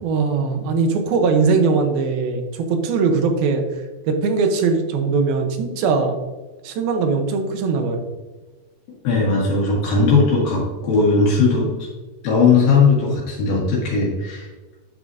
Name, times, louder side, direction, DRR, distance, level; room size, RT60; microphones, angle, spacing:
voice 1, 0.0-3.6 4.1-6.2 6.6-8.1, right 4 dB, 80° right, 5 dB, 2.8 m, -20 dB
voice 2, 9.0-11.7 12.2-14.5, left 4 dB, 70° left, -5 dB, 3.4 m, -18 dB
9.6 x 8.3 x 2.7 m, 1.2 s
omnidirectional pair, 4.3 m